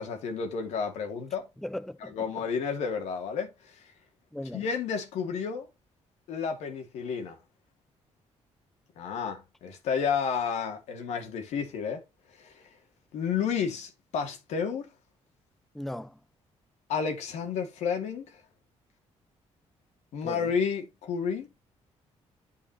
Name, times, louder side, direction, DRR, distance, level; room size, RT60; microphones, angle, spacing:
voice 1, 0.0-1.5 2.1-3.8 4.5-5.7 6.3-7.4 9.0-12.0 12.4-12.7 13.1-14.9 16.9-18.4 20.1-21.5, left 6 dB, 90° left, 2.7 m, -31 dB
voice 2, 1.6-2.3 4.3-4.7 15.7-16.2 20.2-20.5, left 1 dB, ahead, 0.6 m, -37 dB
8.9 x 5.4 x 3.0 m
cardioid pair, 120°, 11 cm